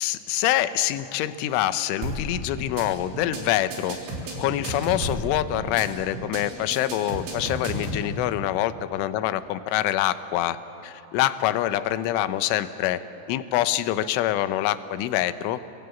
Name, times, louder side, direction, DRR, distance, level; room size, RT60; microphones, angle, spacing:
voice 1, 0.0-4.0 4.4-10.6 10.8-13.0 13.3-15.6, left 13 dB, 85° left, 12 dB, 3.3 m, -25 dB
sound 1, 2.0-2.3 2.6-2.8 3.1-3.4 3.7-5.3 5.6-5.8 6.1-6.4 6.7-8.0, right 1 dB, 85° right, 6.2 m, -32 dB
28.0 x 23.0 x 8.4 m, 2.8 s
omnidirectional pair, 5.5 m